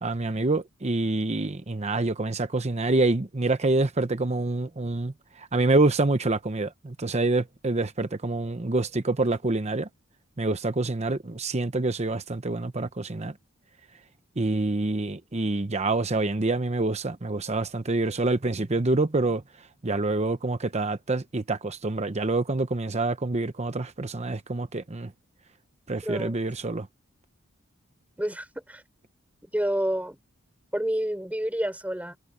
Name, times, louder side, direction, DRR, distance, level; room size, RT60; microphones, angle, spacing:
voice 1, 0.0-9.9 10.4-13.3 14.4-19.4 19.8-25.1 25.9-26.9, right 2 dB, 30° right, 0.9 m, -26 dB
voice 2, 26.0-26.3 28.2-28.8 29.4-30.2 30.7-32.2, equal, 5° right, 4.4 m, -29 dB
head